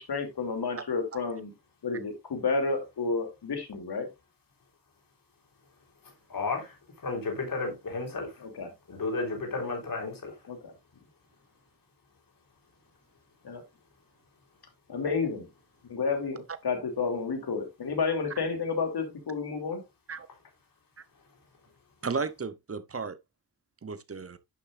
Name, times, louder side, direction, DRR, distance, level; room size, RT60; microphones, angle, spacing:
voice 1, 0.0-1.5 1.8-4.1 8.4-8.7 10.5-10.7 13.4-13.6 14.9-15.5 15.9-19.8, left 4 dB, 80° left, 3.1 m, -31 dB
voice 2, 6.3-8.4 8.9-10.3, left 3 dB, 60° left, 3.9 m, -33 dB
voice 3, 22.0-23.2 23.8-24.4, right 4 dB, 35° right, 0.9 m, -34 dB
11.0 x 6.7 x 2.6 m
wide cardioid pair, 105°, 38 cm